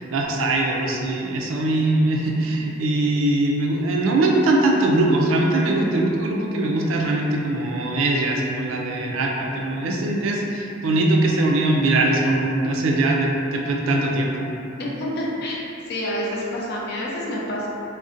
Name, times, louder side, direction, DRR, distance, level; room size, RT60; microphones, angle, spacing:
voice 1, 0.0-14.5, right 2 dB, 85° right, 0 dB, 0.4 m, -21 dB
voice 2, 14.8-15.6 15.9-17.7, left 1 dB, 55° left, -4 dB, 0.4 m, -28 dB
2.6 x 2.1 x 2.4 m, 2.8 s
head